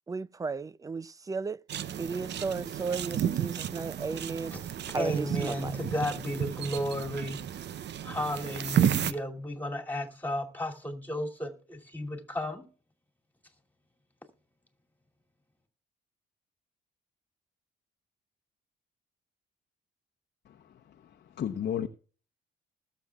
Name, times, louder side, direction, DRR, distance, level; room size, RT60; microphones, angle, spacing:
voice 1, 0.1-1.6 2.0-4.5 4.9-5.8, right 4 dB, 15° right, 0.4 m, -34 dB
sound 1, 1.7-9.1, right 10 dB, 60° right, 0.7 m, -32 dB
voice 2, 4.9-7.5 8.0-12.6, left 1 dB, 10° left, 2.6 m, -34 dB
voice 3, 20.5-21.9, left 9 dB, 55° left, 0.9 m, -35 dB
20.0 x 7.1 x 2.4 m
cardioid pair, 90°, 20 cm